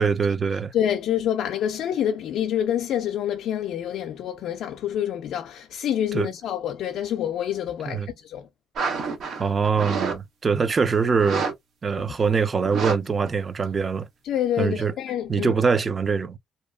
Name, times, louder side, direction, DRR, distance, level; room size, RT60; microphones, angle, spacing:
voice 1, 0.0-0.7 6.1-6.3 7.9-8.1 9.4-11.5 11.8-14.1 14.6-14.9 15.3-16.4, right 5 dB, 35° right, 0.4 m, -23 dB
voice 2, 0.7-8.5 14.2-15.5, left 10 dB, 80° left, 0.3 m, -27 dB
sound 1, 8.8-10.2 10.5-10.7 11.1-11.5 11.9-12.0 12.6-13.0 13.3-13.4, right 5 dB, 70° right, 0.8 m, -28 dB
2.7 x 2.3 x 2.2 m
cardioid pair, 90°, 0 cm